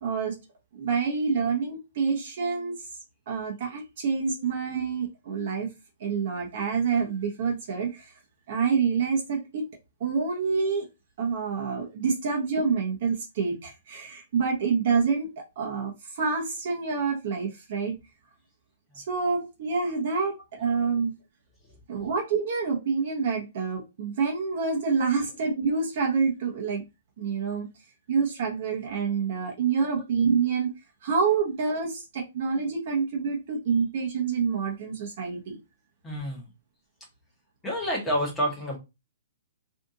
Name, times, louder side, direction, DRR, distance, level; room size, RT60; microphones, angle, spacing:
voice 1, 0.0-0.4 0.7-2.8 3.3-5.7 6.0-8.1 8.5-9.6 10.0-10.9 11.2-15.3 15.6-18.0 18.9-21.1 21.9-26.8 27.2-27.7 28.1-30.7 31.0-35.6, right 5 dB, 40° right, 0 dB, 0.7 m, -27 dB
voice 2, 36.0-36.5 37.6-38.8, equal, 5° left, -2 dB, 0.9 m, -29 dB
2.7 x 2.5 x 3.6 m, 0.25 s
hypercardioid pair, 175°, 0 cm